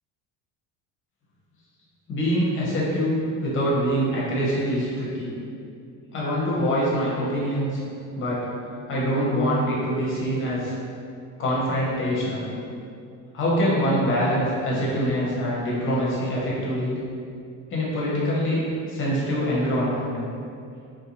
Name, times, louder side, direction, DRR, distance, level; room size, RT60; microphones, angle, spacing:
voice 1, 2.1-5.3 6.1-7.8 8.1-8.5 8.9-10.7 11.4-12.5 13.3-16.9 17.7-20.1, equal, 35° left, -6 dB, 0.7 m, -24 dB
2.5 x 2.1 x 2.9 m, 2.5 s
cardioid pair, 140°, 37 cm